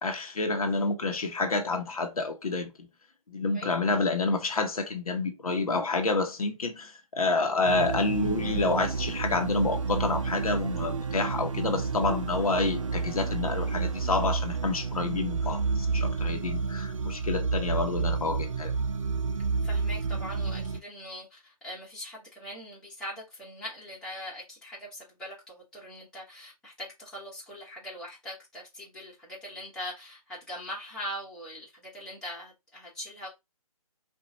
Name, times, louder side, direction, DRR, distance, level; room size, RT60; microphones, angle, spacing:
voice 1, 0.0-2.7 3.3-18.7, left 3 dB, 70° left, 1.2 m, -29 dB
sound 1, 7.6-20.8, right 4 dB, 55° right, 0.7 m, -30 dB
voice 2, 19.6-33.3, equal, 5° left, 1.8 m, -41 dB
4.4 x 2.7 x 4.0 m
figure-of-eight pair, 150°, 19 cm